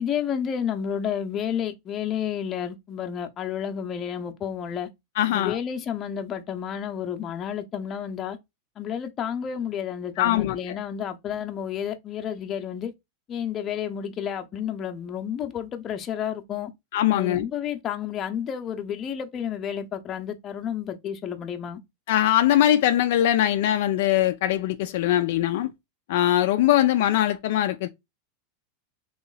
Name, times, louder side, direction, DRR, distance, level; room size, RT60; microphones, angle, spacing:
voice 1, 0.0-4.9 5.3-8.4 8.8-12.9 13.3-16.7 17.1-21.8, left 8 dB, 35° left, 0.8 m, -31 dB
voice 2, 5.2-5.6 10.2-10.8 16.9-17.4 22.1-25.7 26.1-27.9, left 12 dB, 70° left, 0.4 m, -21 dB
3.1 x 2.9 x 4.0 m
hypercardioid pair, 115°, 0 cm